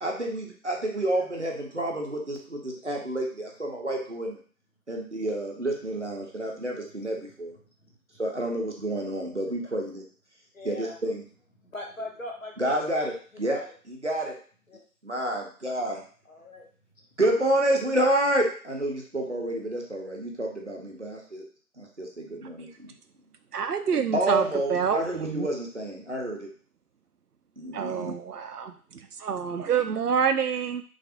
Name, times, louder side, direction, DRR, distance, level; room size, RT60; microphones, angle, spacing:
voice 1, 0.0-4.4 4.9-7.5 8.2-10.0 10.6-11.2 12.6-13.1 13.4-13.6 13.9-14.3 15.0-16.0 17.2-21.4 21.8-22.9 24.1-26.5 27.6-28.1, right 1 dB, 50° right, 0 dB, 0.8 m, -29 dB
voice 2, 10.5-11.0 11.7-13.2 13.5-13.7 14.7-14.8 16.3-16.7, left 1 dB, 60° left, 0 dB, 0.9 m, -40 dB
voice 3, 23.5-25.5 27.7-30.8, right 7 dB, 85° right, 8 dB, 0.6 m, -27 dB
3.2 x 2.6 x 2.7 m, 0.43 s
figure-of-eight pair, 180°, 45 cm